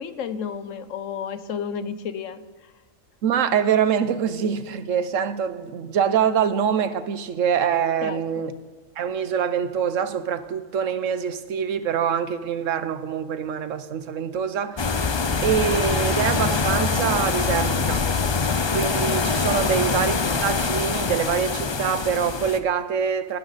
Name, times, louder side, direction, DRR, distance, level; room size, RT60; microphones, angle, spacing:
voice 1, 0.0-2.4 8.0-8.2 19.5-19.7, left 7 dB, 70° left, 13 dB, 1.1 m, -32 dB
voice 2, 3.2-8.5 9.0-14.9 15.4-18.1 18.7-23.4, right 8 dB, 70° right, 12 dB, 1.1 m, -24 dB
sound 1, 14.8-22.6, left 4 dB, 45° left, 0.3 m, -24 dB
19.0 x 11.0 x 4.1 m, 1.4 s
omnidirectional pair, 1.4 m